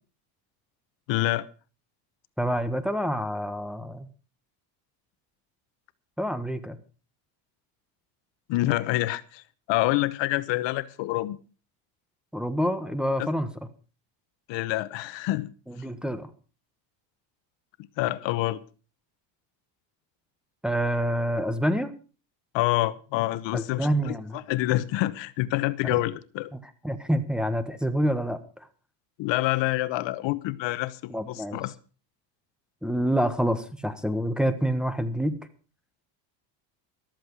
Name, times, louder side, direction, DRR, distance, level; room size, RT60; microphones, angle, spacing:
voice 1, 1.1-1.5 8.5-11.4 14.5-15.5 18.0-18.6 22.5-26.5 29.2-31.7, left 17 dB, 60° left, 1.0 m, -27 dB
voice 2, 2.4-4.1 6.2-6.8 12.3-13.5 15.7-16.3 20.6-21.9 23.5-24.4 26.5-26.6 26.8-28.7 31.1-31.6 32.8-35.4, equal, ahead, 1.3 m, -27 dB
14.0 x 13.0 x 4.7 m
cardioid pair, 120°, 49 cm